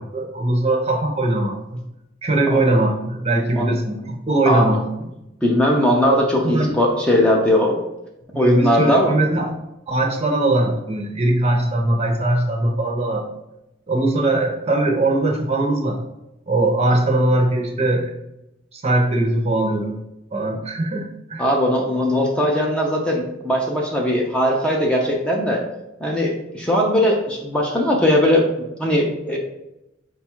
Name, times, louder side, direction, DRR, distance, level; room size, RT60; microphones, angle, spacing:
voice 1, 0.0-1.8 2.2-4.8 6.1-6.8 8.3-9.5 9.9-13.3 13.9-16.0 16.5-18.1 18.7-20.0 20.3-21.5, right 2 dB, 35° right, 2 dB, 0.6 m, -20 dB
voice 2, 5.4-7.8 8.3-9.1 21.4-25.6 26.0-28.4 28.8-29.4, left 1 dB, 5° left, -2 dB, 0.4 m, -19 dB
4.9 x 2.3 x 4.4 m, 0.90 s
head